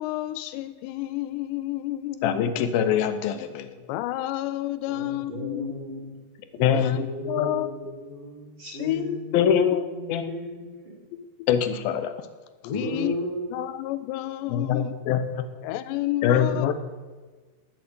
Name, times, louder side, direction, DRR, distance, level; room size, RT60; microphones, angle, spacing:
voice 1, 0.0-2.7 3.9-5.7 6.7-7.7 8.7-9.2 11.1-11.5 12.6-13.1 13.5-14.9 15.6-16.7, left 15 dB, 90° left, 13 dB, 2.8 m, -30 dB
voice 2, 2.2-3.7 6.6-7.0 7.4-7.5 9.3-9.8 10.1-10.3 11.5-12.1 14.5-15.5 16.2-16.7, left 8 dB, 75° left, 10 dB, 2.4 m, -23 dB
voice 3, 4.8-6.2 6.5-11.2 12.7-13.7 16.4-16.7, equal, 15° right, -1 dB, 2.5 m, -35 dB
19.0 x 7.0 x 7.8 m, 1.3 s
omnidirectional pair, 4.9 m